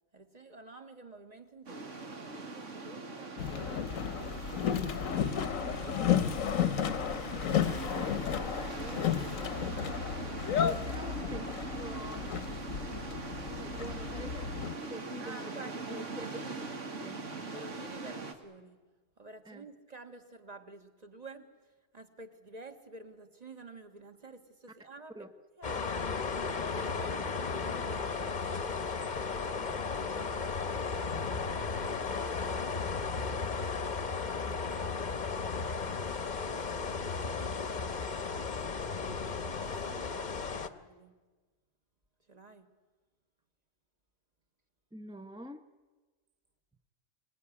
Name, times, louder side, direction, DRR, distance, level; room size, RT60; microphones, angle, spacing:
voice 1, 0.1-4.3 5.4-6.1 7.3-9.3 10.1-10.9 15.2-16.6 17.4-18.8 19.2-21.5 21.9-25.3 25.6-28.7 34.7-35.0 35.8-37.2 39.2-41.2 42.3-42.7, right 2 dB, 30° right, 6 dB, 1.7 m, -50 dB
sound 1, 1.7-18.3, right 3 dB, 70° right, 2.1 m, -41 dB
Boat Water vehicle, 3.4-14.8, left 9 dB, 85° left, 1.4 m, -33 dB
voice 2, 10.6-12.3 12.7-12.9 13.5-16.6 17.0-17.3 19.4-19.7 25.1-25.3 29.3-29.9 44.9-45.6, right 1 dB, 5° right, 8 dB, 0.6 m, -46 dB
sound 2, 25.6-40.7, left 4 dB, 40° left, 1.0 m, -35 dB
25.5 x 18.5 x 9.8 m, 1.3 s
omnidirectional pair, 1.3 m